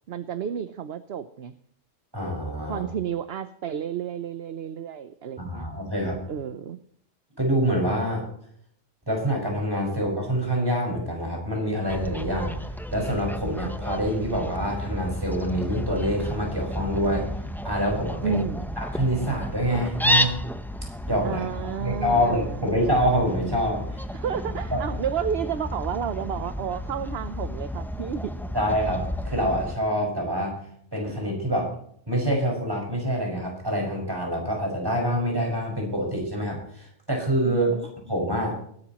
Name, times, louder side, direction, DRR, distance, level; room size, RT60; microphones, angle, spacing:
voice 1, 0.1-1.5 2.6-5.7 6.3-6.8 18.2-18.7 21.2-22.6 24.1-28.3 37.4-37.9, right 8 dB, 60° right, 11 dB, 1.0 m, -31 dB
voice 2, 2.1-2.8 5.4-6.2 7.4-8.2 9.1-17.3 17.6-18.4 18.8-20.4 21.1-21.4 21.8-24.0 24.5-24.6 28.5-30.6 30.9-31.7 32.1-38.6, equal, 20° right, -1 dB, 5.8 m, -26 dB
Fowl, 11.9-29.8, left 1 dB, ahead, 0.6 m, -32 dB
23.0 x 12.0 x 3.0 m, 0.65 s
omnidirectional pair, 1.2 m